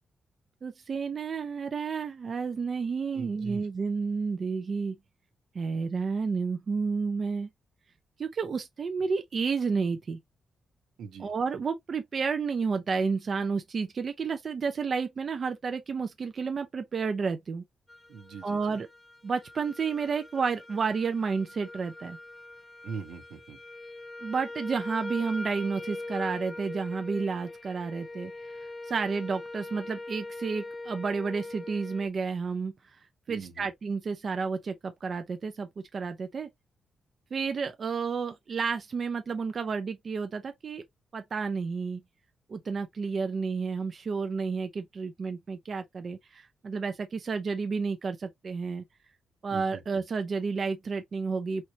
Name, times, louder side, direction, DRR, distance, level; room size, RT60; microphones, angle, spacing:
voice 1, 0.6-5.0 5.5-7.5 8.2-10.2 11.2-17.6 18.4-18.9 19.2-22.2 24.2-28.3 28.6-32.7 33.3-36.5 37.3-40.8 41.1-42.0 42.5-48.8 49.4-51.6, right 5 dB, 40° right, 0.5 m, -31 dB
voice 2, 3.1-3.7 11.0-11.3 18.1-18.8 22.8-23.6 33.3-33.7 49.5-50.0, right 5 dB, 85° right, 1.0 m, -42 dB
sound 1, 17.9-32.1, left 2 dB, 15° left, 0.4 m, -42 dB
4.2 x 3.1 x 2.7 m
cardioid pair, 130°, 0 cm